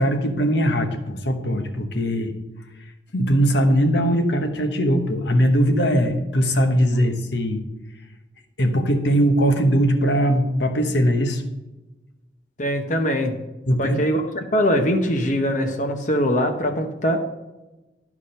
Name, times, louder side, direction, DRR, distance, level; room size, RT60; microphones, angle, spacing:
voice 1, 0.0-2.3 3.1-7.6 8.6-11.4 13.7-14.0, equal, 70° left, 5 dB, 1.2 m, -20 dB
voice 2, 12.6-13.4 13.8-17.3, equal, 40° left, 4 dB, 0.9 m, -22 dB
11.5 x 4.9 x 5.6 m, 1.1 s
head